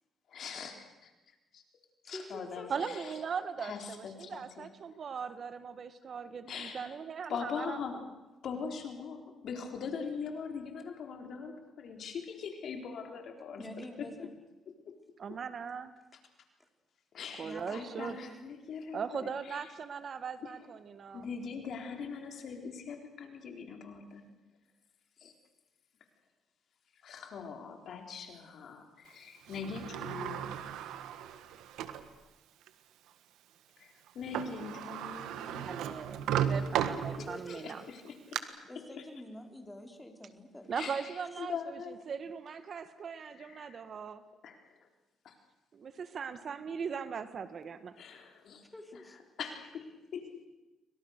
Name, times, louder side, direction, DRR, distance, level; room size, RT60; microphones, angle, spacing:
voice 1, 0.3-1.6 2.0-3.1 3.6-4.7 6.5-7.0 7.3-8.0 8.4-14.3 17.1-19.7 21.1-24.2 25.2-25.3 27.0-30.4 33.8-35.8 37.2-38.4 40.7-42.0 43.3-43.8 44.4-44.8 45.2-45.3 47.9-48.6 48.9-49.0 49.4-50.5, left 6 dB, 65° left, 4 dB, 4.2 m, -42 dB
voice 2, 2.0-3.3 13.6-14.3 17.4-18.5 36.8-37.7 38.7-40.7 41.3-41.4 48.7-49.2, left 1 dB, 10° left, 4 dB, 4.5 m, -47 dB
voice 3, 2.7-7.8 15.2-15.9 17.4-18.2 18.9-20.6 21.0-21.2 35.7-36.2 36.5-37.8 40.7-41.8 42.1-44.2 45.7-47.9, right 6 dB, 50° right, 12 dB, 1.6 m, -39 dB
Sliding door, 29.5-32.1 32.7-32.8 34.1-34.2 34.3-37.5 38.0-38.4, right 9 dB, 90° right, 1.6 m, -35 dB
29.5 x 24.5 x 6.7 m, 1.1 s
cardioid pair, 90°, 0 cm